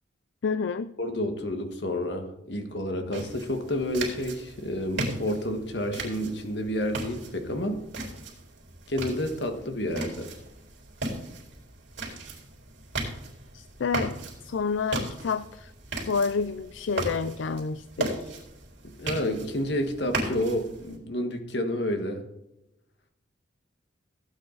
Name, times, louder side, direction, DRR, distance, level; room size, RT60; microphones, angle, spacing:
voice 1, 0.4-0.9 13.5-14.2 14.4-15.7 16.1-18.3, left 5 dB, 85° left, 13 dB, 0.4 m, -29 dB
voice 2, 1.0-7.8 8.9-10.3 19.0-22.2, left 1 dB, 65° left, 6 dB, 1.6 m, -30 dB
sound 1, 3.1-21.0, right 2 dB, 75° right, 3.9 m, -37 dB
16.0 x 8.9 x 4.0 m, 0.89 s
head